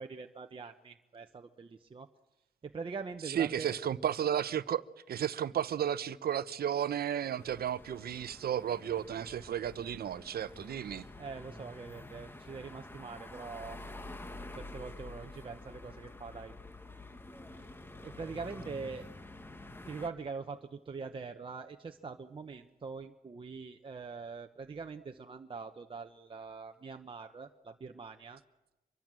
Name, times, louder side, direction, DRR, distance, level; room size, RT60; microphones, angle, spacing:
voice 1, 0.0-2.1 2.6-3.8 11.2-13.8 14.5-16.5 17.5-17.7 18.0-19.1 19.8-28.4, right 4 dB, 35° right, 1.0 m, -43 dB
voice 2, 3.3-11.0, right 9 dB, 85° right, 0.9 m, -33 dB
sound 1, 7.4-20.1, left 2 dB, 15° left, 1.3 m, -48 dB
26.0 x 23.0 x 7.6 m
wide cardioid pair, 170°, 16 cm